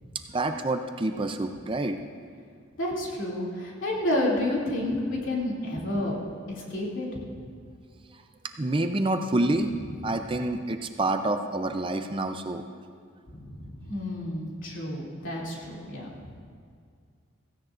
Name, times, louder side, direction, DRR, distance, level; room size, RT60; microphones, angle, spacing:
voice 1, 0.3-2.0 8.6-9.7 10.0-12.6, right 2 dB, 25° right, 7 dB, 0.5 m, -27 dB
voice 2, 2.8-6.2 6.5-7.3 13.3-16.1, left 1 dB, 70° left, -4 dB, 2.7 m, -30 dB
16.5 x 16.0 x 2.5 m, 2.1 s
head